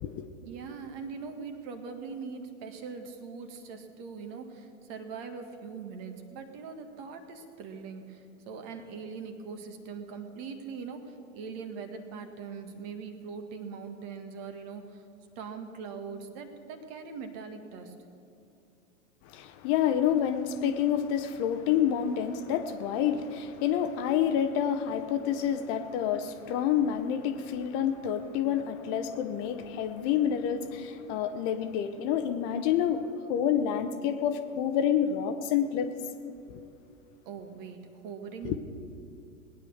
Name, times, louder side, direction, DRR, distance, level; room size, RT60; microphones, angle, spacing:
voice 1, 0.4-15.0 15.4-17.9 37.3-38.6, right 5 dB, 45° right, 1.9 m, -41 dB
voice 2, 19.3-33.0 33.3-35.9 36.5-36.6 38.4-38.6, left 9 dB, 40° left, 1.0 m, -28 dB
19.0 x 9.8 x 6.5 m
figure-of-eight pair, 100°, 43 cm